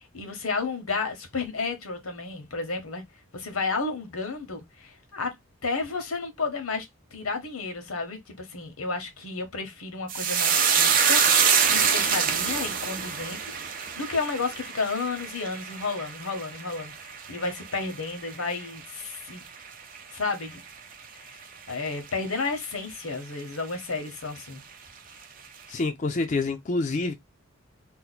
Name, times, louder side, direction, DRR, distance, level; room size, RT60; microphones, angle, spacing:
voice 1, 0.0-3.0 3.3-5.3 5.6-11.2 11.7-13.4 13.6-19.4 20.1-20.6 21.2-21.4 21.7-24.6, left 4 dB, 90° left, 1.1 m, -32 dB
sound 1, 10.1-18.7 19.0-19.7 20.0-20.2, right 7 dB, 40° right, 0.5 m, -25 dB
voice 2, 25.7-27.1, left 3 dB, 35° left, 0.4 m, -27 dB
2.8 x 2.2 x 4.0 m
head